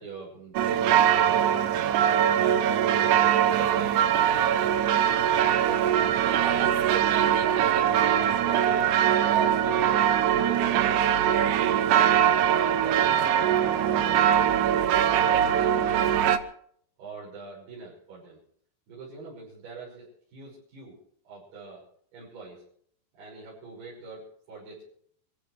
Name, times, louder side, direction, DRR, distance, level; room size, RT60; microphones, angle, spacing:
voice 1, 0.0-1.6 2.3-5.0 5.5-9.0 9.5-12.0 12.4-14.3 14.6-16.4 17.0-18.4 18.9-21.0 21.2-21.8 22.1-22.6 23.2-24.8, right 3 dB, 70° right, -8 dB, 8.0 m, -43 dB
sound 1, 0.5-16.4, right 10 dB, 85° right, 1.8 m, -22 dB
27.0 x 15.0 x 3.4 m, 0.64 s
omnidirectional pair, 4.8 m